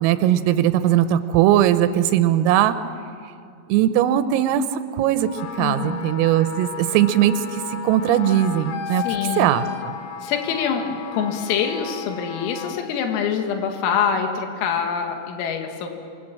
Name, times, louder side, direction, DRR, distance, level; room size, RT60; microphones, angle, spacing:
voice 1, 0.0-2.8 3.7-4.6 4.9-5.3 5.6-9.0 9.4-9.9, right 12 dB, 85° right, 11 dB, 3.4 m, -19 dB
Wind instrument woodwind instrument, 5.2-12.9, left 7 dB, 65° left, 3.0 m, -34 dB
voice 2, 5.6-6.2 8.9-9.5 10.2-15.9, left 7 dB, 85° left, 4 dB, 4.5 m, -25 dB
27.0 x 23.5 x 7.5 m, 2.4 s
omnidirectional pair, 6.0 m